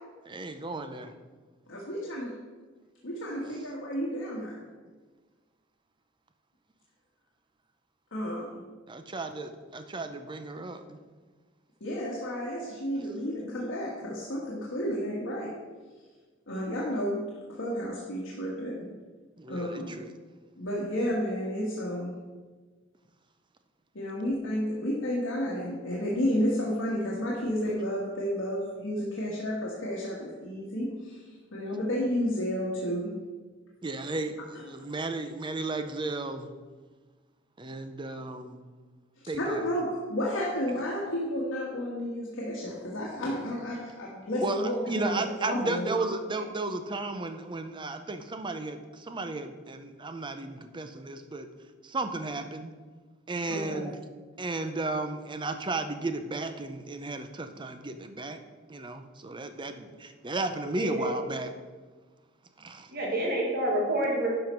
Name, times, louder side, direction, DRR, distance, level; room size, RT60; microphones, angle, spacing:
voice 1, 0.2-1.1 8.9-11.0 19.4-20.1 33.8-36.5 37.6-38.6 39.3-39.7 44.4-51.5 51.8-52.7 53.3-54.0 54.4-58.4 58.7-61.5 62.6-62.9, right 2 dB, 25° right, 8 dB, 0.6 m, -34 dB
voice 2, 1.7-2.3 3.0-4.6 8.1-8.6 11.8-15.5 16.5-17.2 17.5-18.8 19.5-20.0 20.6-22.2 23.9-33.1 39.4-45.9 53.5-53.9, equal, 75° left, -5 dB, 1.5 m, -31 dB
voice 3, 60.8-61.1 62.9-64.4, right 1 dB, 55° right, -2 dB, 1.8 m, -28 dB
10.5 x 5.7 x 4.5 m, 1.4 s
head